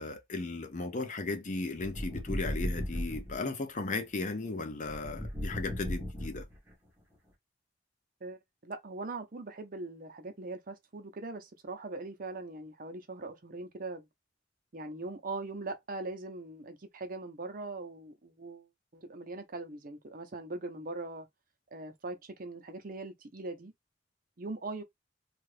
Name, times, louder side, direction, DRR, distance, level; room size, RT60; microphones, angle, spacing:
voice 1, 0.0-6.4, left 3 dB, 45° left, 0.6 m, -36 dB
sound 1, 1.8-3.4 4.9-6.7, equal, 10° right, 1.1 m, -36 dB
voice 2, 8.2-14.1 14.7-18.7 18.9-21.3 21.7-23.7 24.4-24.8, right 2 dB, 50° right, 0.7 m, -41 dB
2.7 x 2.4 x 3.2 m
head